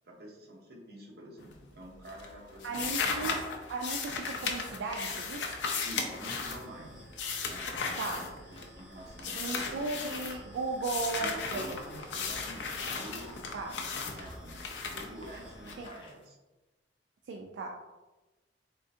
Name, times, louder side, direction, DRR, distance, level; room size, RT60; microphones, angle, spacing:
voice 1, 0.0-3.1 5.8-7.1 7.4-9.8 11.1-13.4 13.6-14.6 14.9-16.4, equal, 65° right, -2 dB, 0.8 m, -48 dB
sound 1, 1.4-1.8 2.1-8.8 9.2-10.4 10.8-15.7, left 4 dB, 85° left, 0.5 m, -36 dB
voice 2, 2.6-3.4 3.7-5.5 8.0-8.2 9.3-11.8 13.5-13.7 15.8-15.9 17.3-17.7, right 3 dB, 85° right, 1 dB, 0.3 m, -36 dB
sound 2, 5.9-15.9, equal, 5° right, 0.5 m, -53 dB
sound 3, 7.4-16.3, left 1 dB, 30° left, 0.7 m, -56 dB
3.6 x 2.5 x 2.6 m, 1.1 s
head